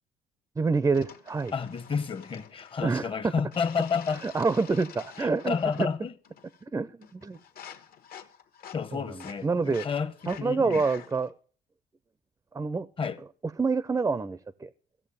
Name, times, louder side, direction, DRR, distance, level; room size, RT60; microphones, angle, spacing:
voice 1, 0.6-1.5 2.8-3.1 4.2-5.9 6.7-7.4 8.9-9.9 10.3-11.3 12.5-12.9 13.6-14.7, right 4 dB, 15° right, 0.5 m, -27 dB
sound 1, 0.9-3.0 3.5-6.0 6.2-6.7 7.0-11.3, left 8 dB, 60° left, 1.2 m, -48 dB
voice 2, 1.5-4.3 5.2-6.1 8.7-10.1 10.4-10.8 13.0-13.2, left 6 dB, 30° left, 0.9 m, -30 dB
14.5 x 7.1 x 6.9 m
cardioid pair, 110°, 17 cm